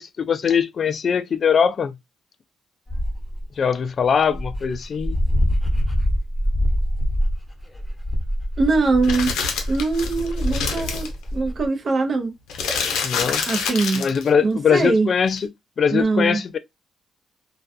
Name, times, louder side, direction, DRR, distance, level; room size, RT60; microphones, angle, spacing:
voice 1, 0.0-2.0 3.6-5.2 13.0-13.4 13.9-15.4 15.8-16.6, left 7 dB, 50° left, 0.3 m, -21 dB
Dog, 2.9-3.4 4.0-4.1 4.3-11.7, equal, 10° left, 1.0 m, -24 dB
voice 2, 8.6-9.3 9.7-12.3 13.5-14.0 14.4-15.1 15.9-16.4, right 3 dB, 45° right, 0.6 m, -22 dB
sound 1, 9.0-11.1 12.5-14.3 15.3-15.4, left 5 dB, 85° left, 0.6 m, -26 dB
2.3 x 2.2 x 2.6 m
cardioid pair, 90°, 0 cm